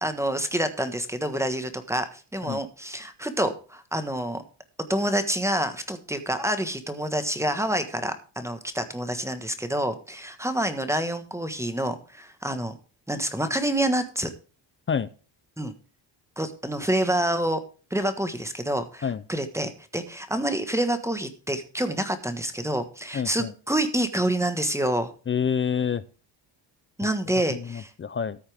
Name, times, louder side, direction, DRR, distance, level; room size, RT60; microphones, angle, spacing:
voice 1, 0.0-4.4 4.9-12.8 13.1-14.3 15.6-15.7 16.4-17.6 17.9-25.1 27.0-27.9, right 1 dB, 5° right, 9 dB, 1.4 m, -27 dB
voice 2, 23.1-23.5 25.3-26.1 27.3-28.4, left 7 dB, 25° left, 16 dB, 0.5 m, -28 dB
13.5 x 8.6 x 3.5 m, 0.36 s
cardioid pair, 140°, 45 cm